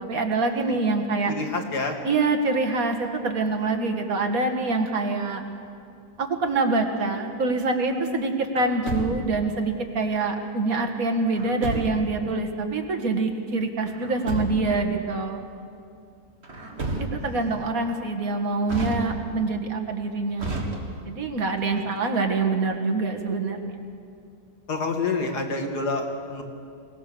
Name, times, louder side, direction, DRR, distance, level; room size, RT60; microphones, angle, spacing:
voice 1, 0.0-1.3 2.0-5.4 6.2-15.4 17.0-23.8, right 3 dB, 60° right, 3 dB, 2.0 m, -25 dB
voice 2, 1.3-2.0 16.5-17.6 24.7-26.4, left 3 dB, 85° left, 3 dB, 2.5 m, -29 dB
Truck, 8.6-9.5 11.4-12.2 13.9-14.8 16.4-17.5 18.7-19.5 20.4-21.3, right 2 dB, 40° right, 2.2 m, -32 dB
22.5 x 17.5 x 6.9 m, 2.4 s
omnidirectional pair, 1.7 m